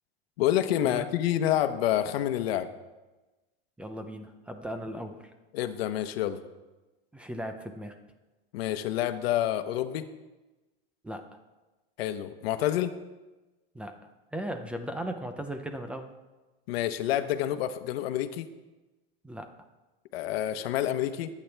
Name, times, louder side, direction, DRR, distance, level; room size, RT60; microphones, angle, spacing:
voice 1, 0.4-2.7 5.5-6.4 8.5-10.0 12.0-12.9 16.7-18.5 20.1-21.3, left 12 dB, 75° left, 10 dB, 1.0 m, -28 dB
voice 2, 3.8-5.3 7.1-7.9 11.0-11.3 13.7-14.0 14.3-16.1 19.2-19.5, right 1 dB, 5° right, 6 dB, 0.4 m, -37 dB
22.5 x 8.7 x 3.4 m, 1.1 s
supercardioid pair, 165°, 31 cm